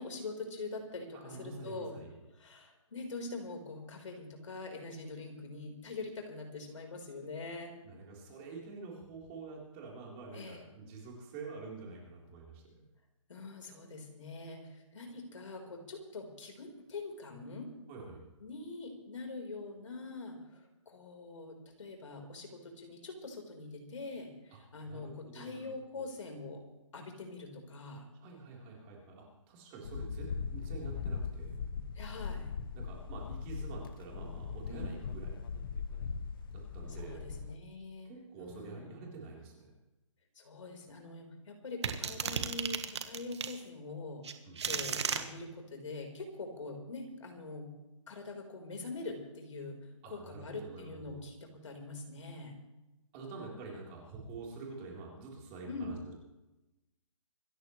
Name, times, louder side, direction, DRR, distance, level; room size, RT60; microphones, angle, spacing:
voice 1, 0.0-2.0 2.3-7.7 10.3-10.7 13.3-17.7 18.4-26.6 26.9-28.1 31.9-32.5 34.7-35.0 36.9-38.1 38.4-39.0 40.3-44.3 44.6-47.7 48.1-52.6 55.7-56.0, left 3 dB, 70° left, 3 dB, 4.3 m, -44 dB
voice 2, 1.1-2.1 7.8-12.9 17.9-18.3 24.5-24.6 24.9-25.7 25.9-26.0 28.2-31.6 32.7-35.4 36.4-37.3 38.0-39.7 44.4-44.7 50.0-51.2 53.1-56.1, right 3 dB, 20° right, -2 dB, 3.8 m, -47 dB
sound 1, 29.8-37.5, left 5 dB, 45° left, 1.2 m, -40 dB
sound 2, 41.8-43.6 44.2-45.2, right 7 dB, 55° right, 1.5 m, -34 dB
26.0 x 14.0 x 3.2 m, 0.99 s
hypercardioid pair, 165°, 17 cm